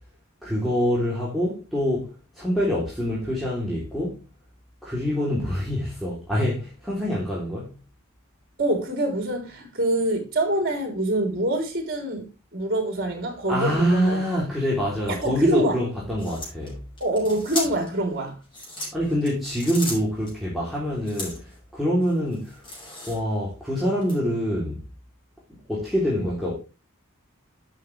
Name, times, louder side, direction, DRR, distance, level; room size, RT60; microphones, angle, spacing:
voice 1, 0.4-4.2 4.8-7.8 13.5-16.8 18.9-22.7 23.1-24.9 25.7-26.6, equal, ahead, 3.3 m, -25 dB
voice 2, 8.6-14.2 15.1-15.8 17.0-18.4, right 1 dB, 45° right, 3.4 m, -25 dB
Cloths hangers sliding, 16.2-18.0 18.4-20.3 21.0-21.6 22.0-23.4 24.0-24.2, left 1 dB, 25° left, 6.0 m, -36 dB
11.5 x 7.5 x 3.3 m
head